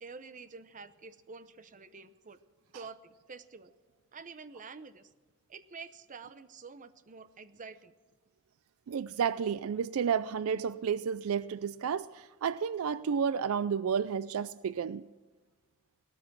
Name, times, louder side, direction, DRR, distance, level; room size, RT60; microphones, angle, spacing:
voice 1, 0.0-2.4 2.7-3.7 4.1-5.1 5.5-7.9, right 4 dB, 40° right, 0.7 m, -48 dB
voice 2, 8.9-15.0, right 7 dB, 75° right, 0.4 m, -31 dB
17.5 x 13.5 x 6.1 m
head